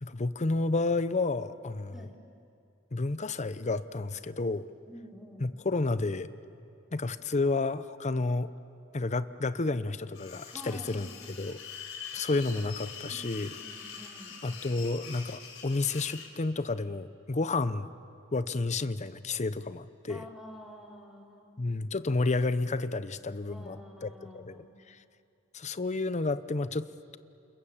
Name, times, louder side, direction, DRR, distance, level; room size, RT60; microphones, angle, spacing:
voice 1, 0.0-2.1 2.9-4.6 5.4-6.3 6.9-8.5 8.9-11.6 12.1-13.5 14.4-17.9 18.3-20.2 21.6-25.0 25.5-26.9, left 3 dB, 35° left, 13 dB, 0.7 m, -31 dB
voice 2, 4.9-5.5 10.5-11.3 13.1-14.4 20.1-21.7 23.5-24.8, equal, ahead, -1 dB, 3.2 m, -49 dB
sound 1, 10.1-16.3, left 7 dB, 80° left, 4.1 m, -44 dB
28.5 x 28.0 x 7.3 m, 2.6 s
head